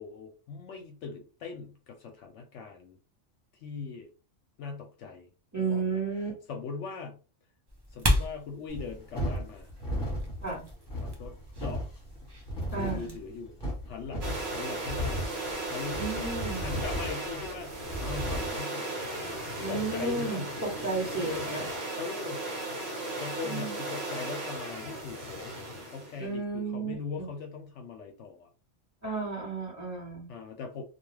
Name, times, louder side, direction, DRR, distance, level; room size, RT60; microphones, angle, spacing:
voice 1, 0.0-3.0 3.6-4.1 4.6-5.3 5.6-7.2 7.9-9.7 10.9-11.8 12.7-13.6 13.9-15.2 15.7-19.1 19.7-20.5 21.1-21.7 22.0-22.5 23.2-25.5 25.9-28.5 30.3-30.8, left 5 dB, 70° left, 4 dB, 0.8 m, -40 dB
voice 2, 5.5-6.3 10.4-10.6 12.7-13.1 15.9-16.6 19.6-21.7 23.4-23.7 26.2-27.3 29.0-30.3, right 4 dB, 15° right, -3 dB, 1.0 m, -33 dB
sound 1, 7.7-13.2, equal, 30° right, 0.4 m, -34 dB
sound 2, 8.7-18.6, equal, 20° left, 1.1 m, -36 dB
sound 3, 14.2-26.2, right 2 dB, 55° right, 1.1 m, -36 dB
2.4 x 2.2 x 3.1 m, 0.35 s
omnidirectional pair, 1.3 m